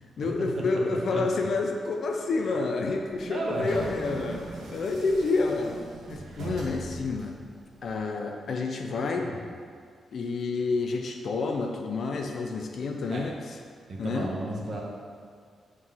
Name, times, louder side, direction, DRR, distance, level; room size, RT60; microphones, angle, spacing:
voice 1, 0.2-4.4 4.7-5.7 6.1-7.4 7.8-9.3 10.1-13.4 14.0-14.3, left 3 dB, 50° left, 3 dB, 0.7 m, -29 dB
voice 2, 0.9-1.2 3.2-3.7 9.1-9.5 13.1-13.3 13.9-14.8, right 2 dB, 40° right, -2 dB, 1.5 m, -33 dB
sound 1, 3.1-8.0, right 2 dB, 75° right, 1.8 m, -40 dB
8.0 x 4.9 x 5.8 m, 2.1 s
wide cardioid pair, 150°, 0 cm